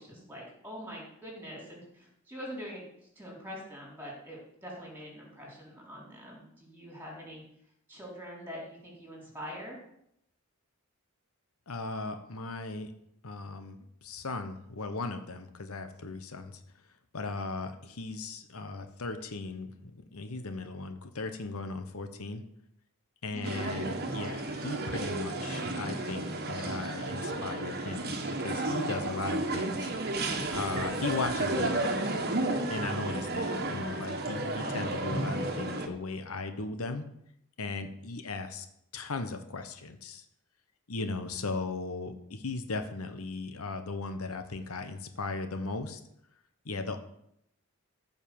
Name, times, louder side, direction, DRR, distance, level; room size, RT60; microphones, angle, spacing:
voice 1, 0.0-7.4 7.9-9.8 23.3-23.6, equal, 10° right, -3 dB, 4.2 m, -44 dB
voice 2, 11.7-12.9 13.2-16.6 17.1-22.4 23.2-29.9 30.5-32.0 32.7-37.0 37.6-38.7 38.9-40.2 40.9-46.0 46.6-47.0, left 3 dB, 80° left, 8 dB, 1.1 m, -37 dB
sound 1, 23.4-35.9, right 2 dB, 45° right, 1.4 m, -32 dB
14.0 x 5.5 x 7.1 m, 0.75 s
head